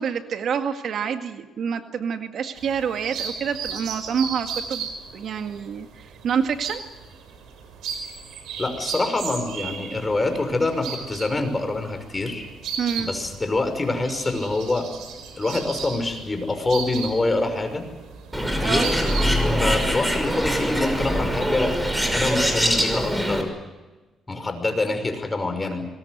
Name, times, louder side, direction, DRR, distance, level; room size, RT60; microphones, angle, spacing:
voice 1, 0.0-6.8 12.8-13.1 18.6-18.9, right 7 dB, 65° right, 7 dB, 1.9 m, -27 dB
sound 1, 2.6-20.2, right 6 dB, 80° right, 5.7 m, -36 dB
voice 2, 8.6-12.4 13.0-14.9 15.4-17.8 18.6-19.0 19.6-21.7 22.1-23.5 24.3-25.9, left 2 dB, 20° left, 7 dB, 5.8 m, -25 dB
Bird, 18.3-23.4, equal, 5° right, 5.6 m, -23 dB
25.5 x 21.0 x 8.0 m, 1.2 s
cardioid pair, 90°, 0 cm